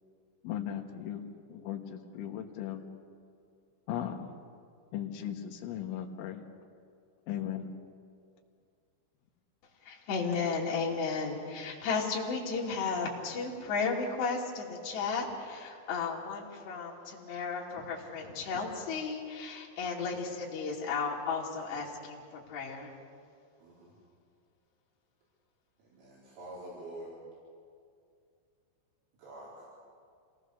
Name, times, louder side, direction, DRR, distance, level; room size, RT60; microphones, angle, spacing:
voice 1, 0.4-2.9 3.9-4.4 4.9-6.5 7.3-7.7, left 10 dB, 75° left, 3 dB, 3.7 m, -37 dB
voice 2, 9.8-22.2 22.5-22.9, left 4 dB, 60° left, -4 dB, 4.6 m, -34 dB
voice 3, 23.6-23.9 25.8-27.1 29.2-29.7, right 1 dB, 75° right, -8 dB, 6.9 m, -46 dB
27.0 x 19.5 x 6.6 m, 2.3 s
omnidirectional pair, 5.8 m